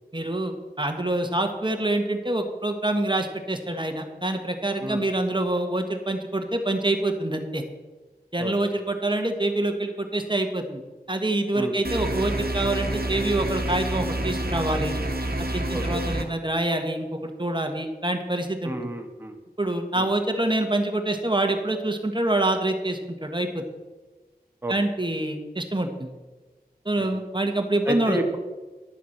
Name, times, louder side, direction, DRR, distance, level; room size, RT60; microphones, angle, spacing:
voice 1, 0.1-7.6 8.3-10.8 11.1-14.9 15.5-18.9 19.6-23.6 24.7-26.1 26.8-28.2, right 1 dB, 30° right, 5 dB, 1.4 m, -26 dB
sound 1, 11.8-16.2, right 1 dB, 70° right, 1.4 m, -28 dB
voice 2, 18.6-19.3 20.0-20.1 24.6-24.7 27.0-27.1 27.9-28.4, right 1 dB, 15° right, 3 dB, 1.3 m, -30 dB
11.5 x 7.2 x 5.9 m, 1.2 s
wide cardioid pair, 40°, 16 cm